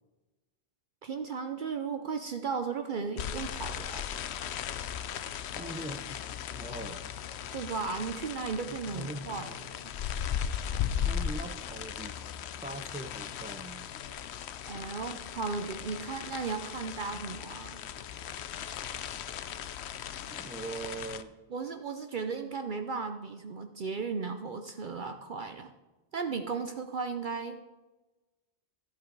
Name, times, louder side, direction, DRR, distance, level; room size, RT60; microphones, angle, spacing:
voice 1, 1.0-4.0 7.5-9.9 14.7-17.8 21.5-25.7 26.1-27.6, right 5 dB, 55° right, 6 dB, 0.8 m, -35 dB
sound 1, 3.2-21.2, left 9 dB, 90° left, 0.9 m, -37 dB
voice 2, 5.5-6.0 6.5-7.1 8.7-9.5 11.0-12.2 12.6-13.9 20.3-21.4, right 2 dB, 10° right, 9 dB, 0.4 m, -41 dB
13.5 x 8.2 x 4.7 m, 1.1 s
omnidirectional pair, 1.1 m